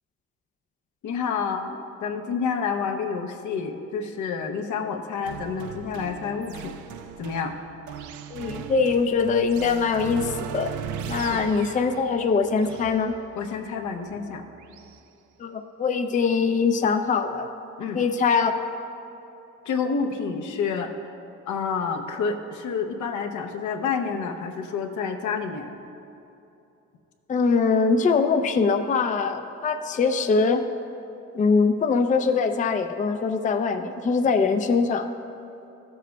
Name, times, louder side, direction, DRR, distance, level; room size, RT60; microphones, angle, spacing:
voice 1, 1.0-6.8 7.2-7.6 11.2-11.4 13.4-14.4 17.8-18.0 19.7-21.1 21.5-25.7, left 5 dB, 75° left, 4 dB, 0.8 m, -29 dB
sound 1, 5.3-15.0, right 8 dB, 75° right, 0.5 m, -38 dB
voice 2, 8.3-10.7 11.1-13.2 15.4-17.5 17.9-18.5 27.3-30.6 31.3-35.1, left 5 dB, 25° left, 6 dB, 0.4 m, -22 dB
13.5 x 7.4 x 2.3 m, 2.8 s
cardioid pair, 90°, 30 cm